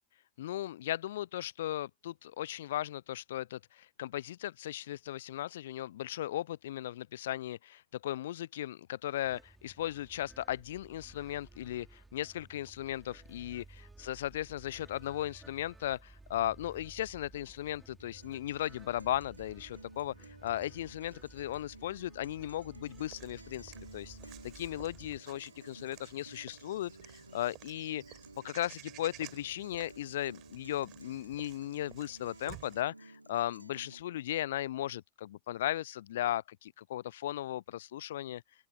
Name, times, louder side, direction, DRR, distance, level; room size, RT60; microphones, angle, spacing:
voice 1, 0.4-13.6 14.0-20.1 20.4-24.2 24.4-28.0 28.4-38.4, left 13 dB, 65° left, 0.6 m, -37 dB
sound 1, 9.2-25.2, right 2 dB, 10° right, 3.9 m, -56 dB
Guitar, 18.0-34.0, right 2 dB, 85° right, 1.0 m, -54 dB
Walk footsteps / Bird vocalization bird call bird song, 22.9-32.8, right 18 dB, 45° right, 5.3 m, -54 dB
open air
figure-of-eight pair, 85°, 0 cm